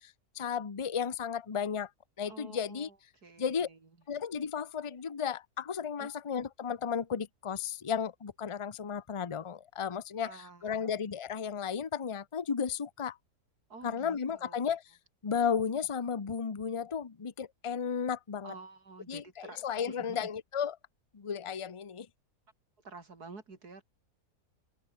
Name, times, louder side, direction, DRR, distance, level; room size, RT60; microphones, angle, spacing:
voice 1, 0.0-1.9 2.2-2.9 3.4-3.7 4.1-13.2 13.8-14.8 15.2-18.5 19.1-20.8 21.1-22.1, left 7 dB, 25° left, 0.7 m, -34 dB
voice 2, 2.3-3.0 3.2-3.8 6.0-6.1 10.2-10.9 13.7-14.7 18.4-20.3 22.8-23.8, right 4 dB, 70° right, 3.9 m, -50 dB
omnidirectional pair, 1.7 m